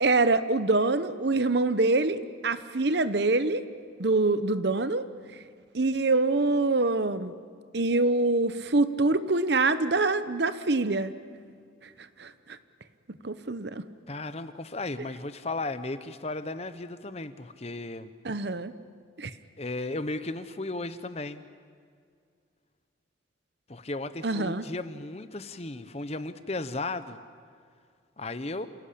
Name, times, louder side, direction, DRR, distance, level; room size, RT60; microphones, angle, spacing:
voice 1, 0.0-3.6 4.0-5.1 5.7-7.3 7.7-11.2 12.2-12.3 13.2-13.9 18.2-18.7 19.2-19.3 24.2-24.6, right 3 dB, 55° right, 13 dB, 0.9 m, -25 dB
voice 2, 14.1-18.1 19.6-21.4 23.7-27.2 28.2-28.7, left 2 dB, 30° left, 12 dB, 0.9 m, -35 dB
28.5 x 17.5 x 8.6 m, 2.2 s
head